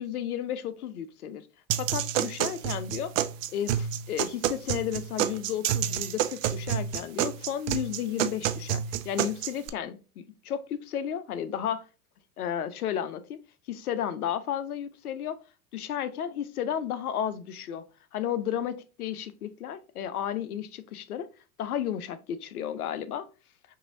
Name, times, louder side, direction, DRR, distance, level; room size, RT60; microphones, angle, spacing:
voice 1, 0.0-1.5 1.8-3.1 3.5-11.9 12.4-13.4 13.7-15.4 15.7-17.9 18.1-21.3 21.6-23.3, left 9 dB, 80° left, 0.6 m, -33 dB
sound 1, 1.7-9.7, right 10 dB, 60° right, 0.6 m, -29 dB
5.8 x 2.7 x 2.6 m
hypercardioid pair, 90°, 43 cm